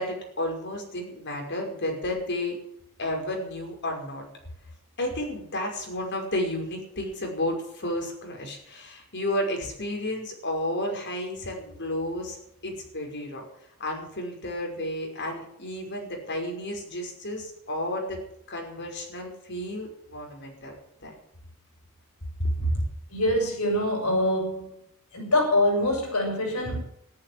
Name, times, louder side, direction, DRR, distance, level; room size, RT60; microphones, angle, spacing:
voice 1, 0.0-2.6 3.0-4.2 5.0-12.4 12.6-13.4 13.8-18.2 18.5-20.7 21.0-21.1 22.4-22.8, left 1 dB, 55° left, 5.6 m, -32 dB
voice 2, 23.1-24.7 25.1-26.8, left 1 dB, 85° left, 6.7 m, -24 dB
14.0 x 12.0 x 7.7 m
head